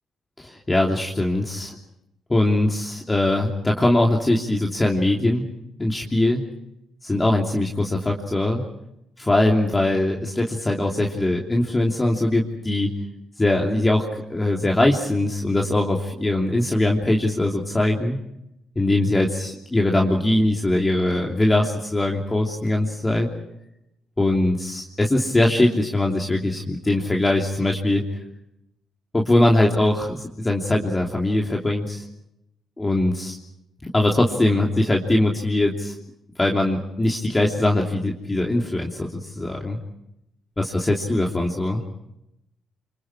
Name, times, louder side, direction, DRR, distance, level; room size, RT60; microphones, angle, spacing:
voice 1, 0.4-1.8 2.3-5.4 5.8-6.4 7.0-8.6 9.2-12.9 13.4-14.0 14.3-18.2 18.7-23.3 24.2-28.0 29.1-32.0 32.8-33.3 33.9-35.9 36.4-39.8 40.6-41.8, left 1 dB, 15° left, -1 dB, 3.0 m, -21 dB
29.5 x 25.5 x 4.9 m, 0.83 s
cardioid pair, 90°, 0 cm